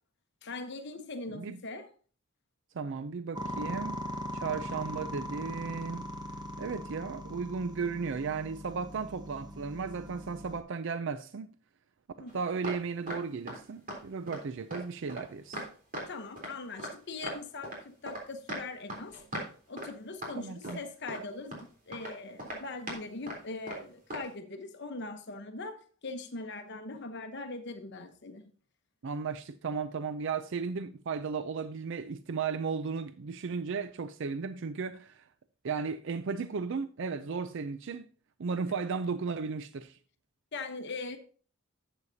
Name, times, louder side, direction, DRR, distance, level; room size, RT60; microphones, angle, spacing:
voice 1, 0.4-1.9 12.2-12.4 16.1-19.2 19.7-25.7 26.0-28.4 40.5-41.2, left 3 dB, 55° left, 1.0 m, -41 dB
voice 2, 2.7-4.0 4.3-6.1 6.6-11.5 12.2-15.6 20.3-20.8 29.0-35.2 35.6-38.1 38.4-40.0, right 5 dB, 65° right, 0.4 m, -35 dB
sound 1, 3.3-10.6, equal, 20° right, 1.3 m, -40 dB
sound 2, 12.3-12.8 13.1-13.6 13.9-14.0 14.3-14.4 14.7-16.1 16.4-16.9 17.2-18.2 18.5-19.5 19.8-19.9 20.2-20.3 20.6-21.2 21.5-21.6 21.9-22.1 22.4-23.0 23.3-23.4 23.7-23.8 24.1-24.3, right 1 dB, 45° right, 3.5 m, -39 dB
12.0 x 8.1 x 2.8 m
head